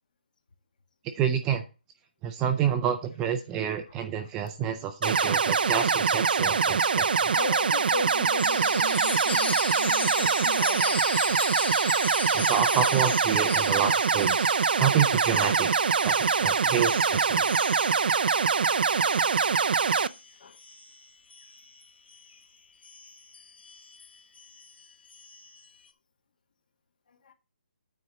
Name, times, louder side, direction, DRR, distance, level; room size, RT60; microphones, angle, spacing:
voice 1, 1.2-1.6 2.2-7.3 12.3-14.5 14.8-15.7 16.0-17.5, right 8 dB, 10° right, 0.4 m, -28 dB
sound 1, 5.0-20.1, right 5 dB, 65° right, 0.5 m, -24 dB
voice 2, 7.3-11.0 11.3-11.4 18.6-18.9 20.4-20.6 22.3-22.4 27.2-27.3, left 4 dB, 50° left, 1.5 m, -37 dB
Chime, 8.4-22.4 22.8-25.7, left 4 dB, 90° left, 1.0 m, -38 dB
9.5 x 4.2 x 6.5 m
hypercardioid pair, 170°, 6 cm